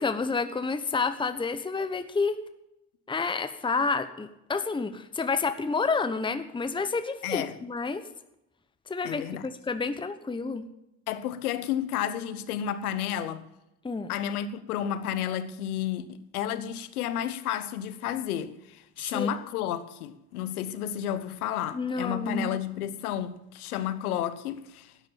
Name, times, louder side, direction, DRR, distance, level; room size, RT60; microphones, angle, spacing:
voice 1, 0.0-2.4 3.1-8.0 8.9-10.6 13.8-14.1 19.1-19.3 21.7-22.5, left 4 dB, 10° left, 1.0 m, -29 dB
voice 2, 7.2-7.6 9.0-9.5 11.1-13.4 14.1-24.9, left 10 dB, 85° left, 1.1 m, -31 dB
13.0 x 9.7 x 7.3 m
hypercardioid pair, 80°, 43 cm